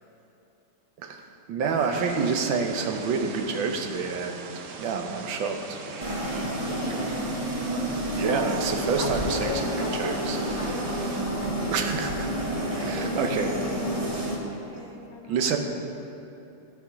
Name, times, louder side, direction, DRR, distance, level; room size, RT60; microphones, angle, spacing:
voice 1, 1.5-4.5 4.8-5.8 8.1-9.5 10.0-10.4 11.7-12.4 12.8-13.5 15.3-15.6, right 5 dB, 90° right, 4 dB, 1.6 m, -28 dB
sound 1, 1.7-2.1 2.7-3.1 5.1-6.5 8.2-9.7 11.6-13.0, right 2 dB, 50° right, 1.9 m, -45 dB
sound 2, 1.9-11.2, right 5 dB, 70° right, 1.2 m, -42 dB
sound 3, 6.0-14.4, right 1 dB, 20° right, 1.0 m, -29 dB
voice 2, 6.5-7.2 9.0-10.3 10.6-12.2 12.9-14.1 14.5-15.5, left 5 dB, 65° left, 3 dB, 0.9 m, -40 dB
13.5 x 5.4 x 5.6 m, 3.0 s
omnidirectional pair, 2.1 m